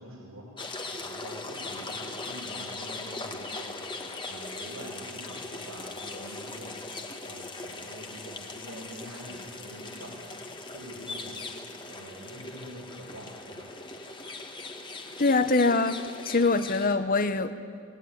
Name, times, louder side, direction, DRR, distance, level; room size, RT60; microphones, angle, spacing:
voice 1, 0.0-10.4 10.7-11.6 11.9-13.7, equal, 85° right, -6 dB, 5.8 m, -45 dB
sound 1, 0.6-16.9, left 3 dB, 20° left, 1.7 m, -40 dB
voice 2, 15.2-16.0 16.3-17.5, left 3 dB, 40° left, 11 dB, 1.1 m, -23 dB
29.0 x 18.0 x 9.9 m, 2.4 s
head